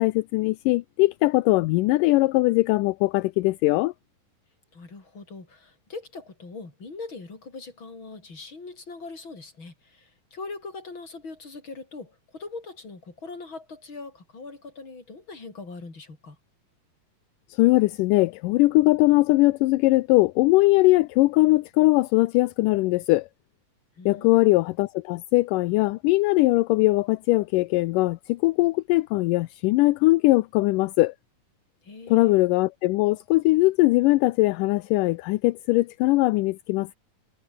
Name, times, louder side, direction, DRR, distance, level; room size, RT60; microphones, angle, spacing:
voice 1, 0.0-3.9 17.5-23.3 24.1-31.1 32.1-37.0, left 20 dB, 80° left, 2.1 m, -21 dB
voice 2, 4.7-16.4 24.0-24.6 31.8-32.4, left 3 dB, 35° left, 5.9 m, -41 dB
omnidirectional pair, 4.0 m